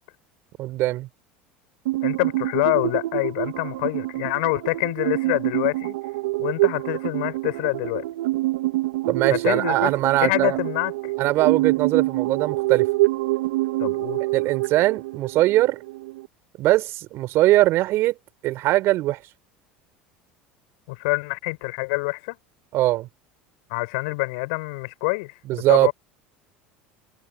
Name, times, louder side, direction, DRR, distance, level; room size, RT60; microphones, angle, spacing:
voice 1, 0.6-1.1 9.1-10.6 11.2-12.9 14.3-15.8 16.6-18.1 18.4-19.2 22.7-23.1 25.5-25.9, right 16 dB, 55° right, 4.4 m, -21 dB
sound 1, 1.9-16.3, right 18 dB, 75° right, 2.8 m, -26 dB
voice 2, 2.0-5.9 6.4-8.1 9.3-9.9 10.2-10.9 13.8-14.2 20.9-22.4 23.7-25.9, left 27 dB, 70° left, 6.2 m, -26 dB
hypercardioid pair, 80°, 5 cm